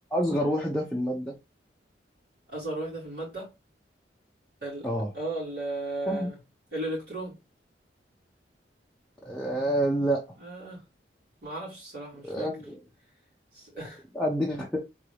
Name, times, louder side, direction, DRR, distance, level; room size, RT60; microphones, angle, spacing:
voice 1, 0.1-1.3 4.8-5.1 6.1-6.3 9.2-10.3 12.3-12.8 14.1-14.8, equal, 5° left, 0.8 m, -27 dB
voice 2, 2.5-3.5 4.6-4.9 5.1-6.4 6.7-7.3 10.4-10.8 11.4-12.5 13.5-14.0, right 2 dB, 60° right, 3.0 m, -35 dB
3.9 x 3.7 x 3.3 m
head